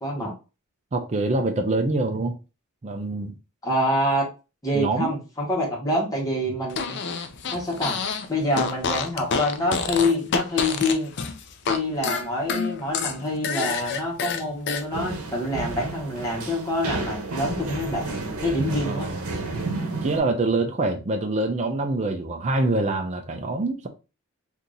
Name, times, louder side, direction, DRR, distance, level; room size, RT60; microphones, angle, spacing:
voice 1, 0.0-0.3 3.6-4.3 4.6-7.0 7.5-8.0 8.3-11.1 11.7-18.2 18.4-19.1, left 1 dB, 15° left, 1.4 m, -26 dB
voice 2, 0.9-2.3 2.8-3.3 4.7-5.1 18.9-19.2 20.0-23.9, right 2 dB, 30° right, 0.5 m, -25 dB
Fart, 6.7-8.3 8.5-11.8 12.0-14.8, left 5 dB, 55° left, 0.5 m, -27 dB
sound 1, 14.9-20.2, right 3 dB, 85° right, 0.9 m, -31 dB
2.9 x 2.6 x 3.7 m
head